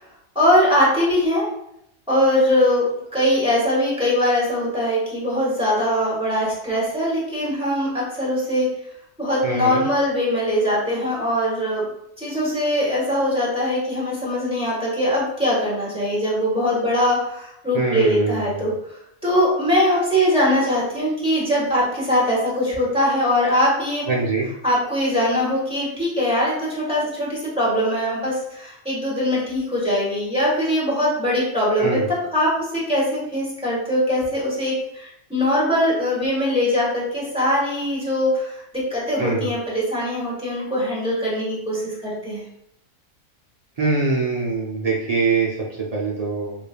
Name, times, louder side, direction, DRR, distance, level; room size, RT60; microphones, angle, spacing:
voice 1, 0.3-1.5 2.1-8.7 9.2-11.9 12.2-18.7 19.2-24.0 24.6-42.4, left 1 dB, 5° right, -7 dB, 1.3 m, -21 dB
voice 2, 9.4-9.8 17.7-18.7 24.1-24.5 31.8-32.1 39.2-39.5 43.8-46.6, right 4 dB, 45° right, -3 dB, 0.5 m, -23 dB
5.0 x 2.6 x 2.2 m, 0.77 s
omnidirectional pair, 1.4 m